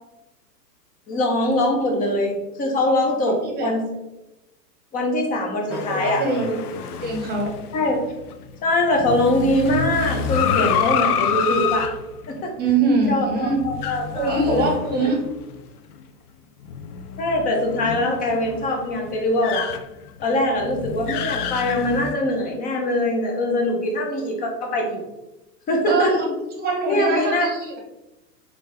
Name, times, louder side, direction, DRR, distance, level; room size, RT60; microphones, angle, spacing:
voice 1, 1.1-3.9 4.9-6.6 7.7-8.0 8.6-11.9 12.3-12.5 13.1-14.7 15.0-15.1 17.2-19.7 20.2-25.1 25.7-26.2 26.9-27.5, left 1 dB, 15° left, 1 dB, 0.6 m, -22 dB
sound 1, 5.7-15.6 16.0-16.1 16.6-22.2, left 8 dB, 65° left, 0.5 m, -28 dB
voice 2, 5.7-6.6 7.0-7.5 12.6-13.6 14.1-15.2 25.8-26.3 26.6-27.8, right 3 dB, 20° right, 0 dB, 1.1 m, -23 dB
3.8 x 3.3 x 3.2 m, 0.97 s
hypercardioid pair, 120°, 49 cm